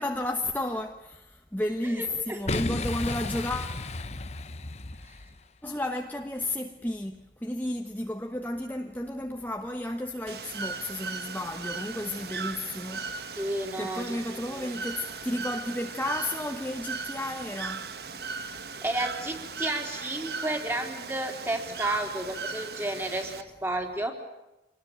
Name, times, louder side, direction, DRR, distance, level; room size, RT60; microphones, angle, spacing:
voice 1, 0.0-3.8 5.6-17.9, left 1 dB, 10° left, 1.3 m, -33 dB
voice 2, 1.8-2.4 13.3-14.2 14.6-14.7 18.8-24.1, right 1 dB, 15° right, 3.7 m, -32 dB
Boom, 2.5-5.4, left 2 dB, 40° left, 0.9 m, -33 dB
Bird / Water, 10.3-23.4, right 4 dB, 65° right, 1.4 m, -38 dB
27.0 x 20.0 x 8.8 m
head